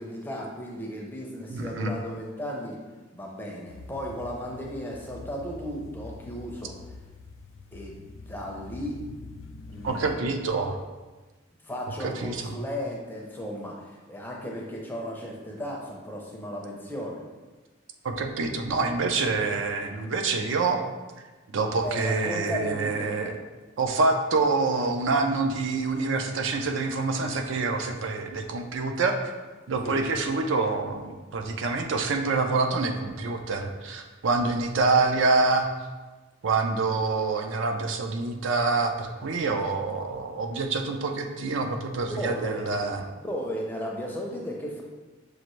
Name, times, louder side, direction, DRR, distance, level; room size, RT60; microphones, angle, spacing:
voice 1, 0.0-2.8 3.1-6.8 7.7-8.0 8.2-9.0 9.7-10.4 11.6-17.2 21.8-23.3 29.8-30.0 42.1-42.7 43.2-44.8, equal, 10° left, -1 dB, 0.5 m, -35 dB
voice 2, 1.5-1.9 9.8-10.8 12.0-12.5 18.0-20.8 21.5-23.3 23.8-29.3 29.7-35.7 36.4-43.0, right 3 dB, 70° right, 5 dB, 0.5 m, -26 dB
sound 1, 3.7-10.1, left 3 dB, 75° left, 0.3 m, -45 dB
6.3 x 2.5 x 3.0 m, 1.2 s
head